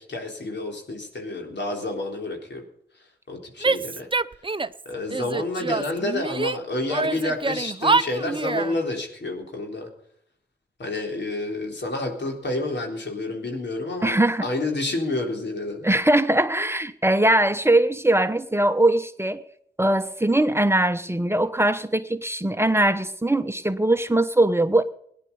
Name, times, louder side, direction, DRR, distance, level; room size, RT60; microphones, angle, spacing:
voice 1, 0.0-2.6 3.3-4.1 4.9-9.9 10.8-15.8, left 2 dB, 80° left, 3.9 m, -29 dB
Female speech woman speaking / Yell, 3.6-4.8 5.1-6.6 6.9-8.7, right 3 dB, 30° right, 0.6 m, -25 dB
voice 2, 14.0-14.5 15.8-19.4 19.8-24.8, right 1 dB, 15° right, 1.0 m, -21 dB
18.0 x 10.5 x 5.5 m
wide cardioid pair, 60°, 18 cm